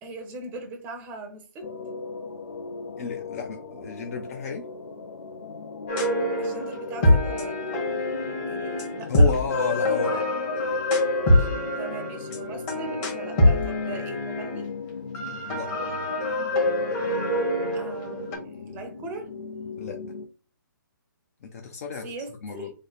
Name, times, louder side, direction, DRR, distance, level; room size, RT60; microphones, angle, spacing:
voice 1, 0.0-1.7 6.4-7.6 8.5-9.3 10.0-10.3 11.8-14.7 17.7-19.3 22.0-22.7, right 3 dB, 15° right, 0.6 m, -39 dB
sound 1, 1.6-20.3, left 4 dB, 85° left, 0.6 m, -38 dB
voice 2, 3.0-4.6 9.1-10.2 11.4-11.5 15.5-15.9 19.8-20.0 21.4-22.0 22.4-22.7, left 5 dB, 45° left, 0.5 m, -31 dB
sound 2, 5.9-14.6 15.1-18.4, left 1 dB, 25° left, 1.2 m, -25 dB
3.2 x 2.1 x 4.0 m
hypercardioid pair, 145°, 11 cm